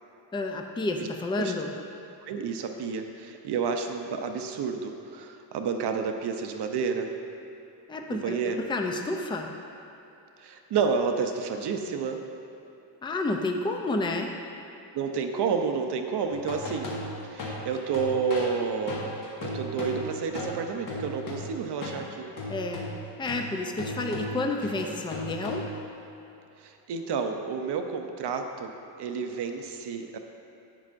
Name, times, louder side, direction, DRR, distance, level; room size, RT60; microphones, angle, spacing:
voice 1, 0.3-1.7 7.9-9.5 13.0-14.3 22.5-22.9 23.2-25.7, left 2 dB, 10° left, 3 dB, 0.4 m, -30 dB
voice 2, 2.2-7.1 8.1-8.6 10.4-12.2 14.9-16.9 17.3-19.1 19.4-22.3 26.6-30.2, right 5 dB, 65° right, 5 dB, 0.7 m, -30 dB
sound 1, 16.3-22.0 22.4-25.9, left 1 dB, 45° left, 1.6 m, -36 dB
11.0 x 8.4 x 2.6 m, 2.9 s
cardioid pair, 145°, 44 cm